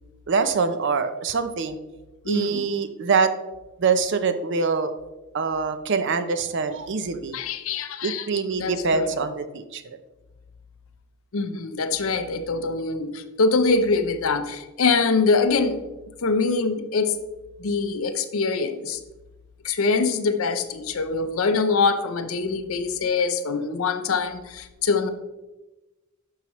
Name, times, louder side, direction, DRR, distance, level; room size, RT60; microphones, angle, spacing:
voice 1, 0.3-1.8 2.3-3.3 3.8-4.9 5.3-7.4 8.0-9.8, right 5 dB, 55° right, 10 dB, 0.6 m, -24 dB
voice 2, 2.2-2.7 7.3-8.3 8.6-9.1 11.3-15.9 16.2-17.2 17.6-19.0 19.6-25.1, left 4 dB, 70° left, 10 dB, 0.6 m, -24 dB
11.5 x 4.7 x 3.1 m, 1.1 s
head